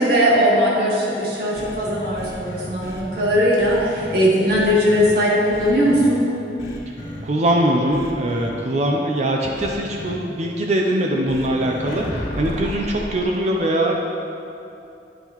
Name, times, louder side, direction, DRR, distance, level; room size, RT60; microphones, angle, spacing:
voice 1, 0.0-6.3, equal, 65° right, -6 dB, 1.7 m, -19 dB
sound 1, 1.6-4.2 4.5-5.1 5.5-6.1 6.6-7.2 7.9-8.5 9.6-10.1 11.3-13.2, left 1 dB, 80° left, 1.4 m, -33 dB
voice 2, 7.2-14.0, right 1 dB, 40° right, 0 dB, 0.5 m, -22 dB
10.0 x 5.6 x 3.0 m, 2.8 s
head